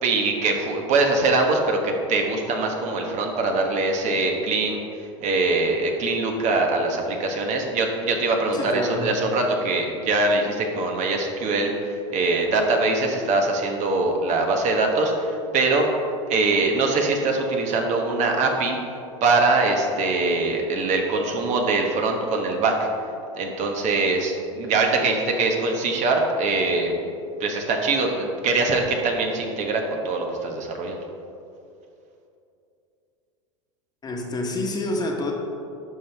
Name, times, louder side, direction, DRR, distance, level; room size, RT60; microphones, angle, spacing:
voice 1, 0.0-4.8 5.2-15.9 16.3-18.8 19.2-22.9 23.3-27.1 27.4-31.0, right 3 dB, 45° right, 2 dB, 1.2 m, -23 dB
voice 2, 8.5-9.2 34.0-35.3, left 2 dB, 25° left, 0 dB, 1.3 m, -28 dB
11.0 x 5.5 x 3.4 m, 2.6 s
hypercardioid pair, 100°, 17 cm